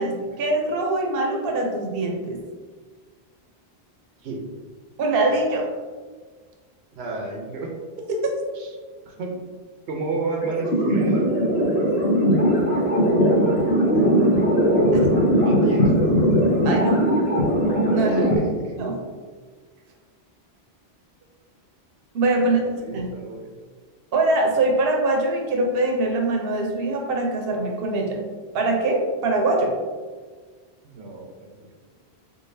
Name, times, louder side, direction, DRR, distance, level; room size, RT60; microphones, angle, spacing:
voice 1, 0.0-2.4 5.0-5.7 16.6-17.0 17.9-18.4 18.8-19.0 22.1-22.6 22.9-23.1 24.1-28.2 28.5-29.7, right 2 dB, 65° right, 1 dB, 0.9 m, -23 dB
voice 2, 6.9-7.7 8.5-8.7 9.0-9.4 9.9-11.3 15.4-16.0 18.1-18.8 22.4-23.5 30.8-31.7, right 3 dB, 90° right, 1 dB, 1.0 m, -31 dB
sound 1, 10.4-18.4, equal, 75° left, 1.1 m, -19 dB
3.8 x 3.7 x 2.6 m, 1.5 s
omnidirectional pair, 1.1 m